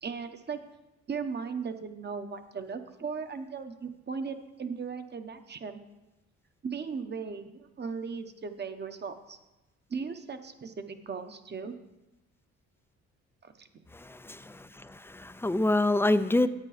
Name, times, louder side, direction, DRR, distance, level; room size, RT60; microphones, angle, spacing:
voice 1, 0.0-0.6 1.1-5.8 6.6-9.4 9.9-11.7 13.4-13.7, right 5 dB, 35° right, 8 dB, 1.0 m, -37 dB
voice 2, 13.9-16.5, left 2 dB, 10° left, 12 dB, 0.5 m, -27 dB
10.5 x 8.3 x 5.0 m, 1.0 s
cardioid pair, 90°, 30 cm